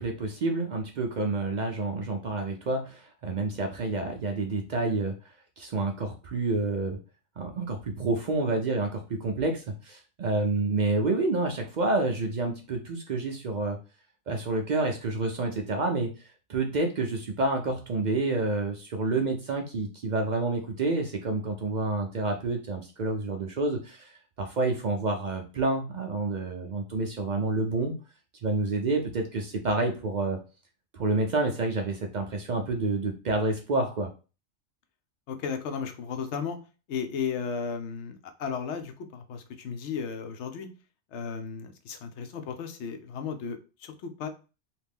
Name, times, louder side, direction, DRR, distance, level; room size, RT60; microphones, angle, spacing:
voice 1, 0.0-5.1 5.6-7.0 7.4-13.8 14.3-27.9 28.4-30.4 30.9-34.1, right 3 dB, 60° right, 4 dB, 0.5 m, -29 dB
voice 2, 35.3-36.6 36.9-40.7 41.1-44.3, left 6 dB, 75° left, 8 dB, 0.9 m, -34 dB
2.8 x 2.5 x 3.5 m, 0.33 s
omnidirectional pair, 1.2 m